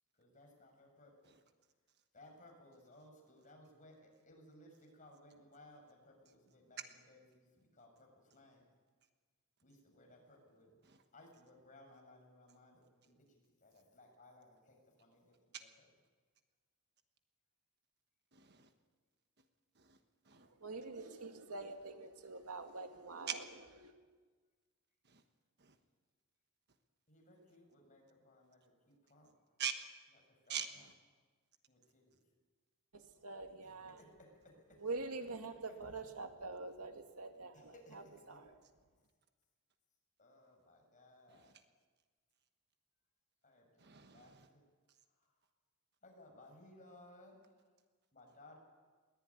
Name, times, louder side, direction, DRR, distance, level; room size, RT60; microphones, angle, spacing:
voice 1, 0.2-1.3 2.1-6.8 7.1-8.6 9.6-10.8 11.1-15.4 27.1-29.3 30.3-30.6 31.7-32.2 33.6-34.8 35.5-35.8 37.5-38.4 40.2-41.5 43.4-44.7 45.1-45.4 46.0-47.7 48.1-48.6, left 1 dB, 35° left, 2 dB, 6.4 m, -62 dB
voice 2, 18.3-18.7 19.4-19.5 19.7-20.5 23.3-23.4 25.0-25.2 25.6-25.8 29.6-29.8 30.5-30.9 41.3-41.6 43.8-44.5 44.9-45.0, right 8 dB, 50° right, 7 dB, 1.3 m, -44 dB
voice 3, 20.4-23.3 23.8-23.9 32.9-34.0 34.8-38.0 38.3-38.5, right 3 dB, 85° right, 5 dB, 2.2 m, -45 dB
21.5 x 18.5 x 9.7 m, 1.4 s
head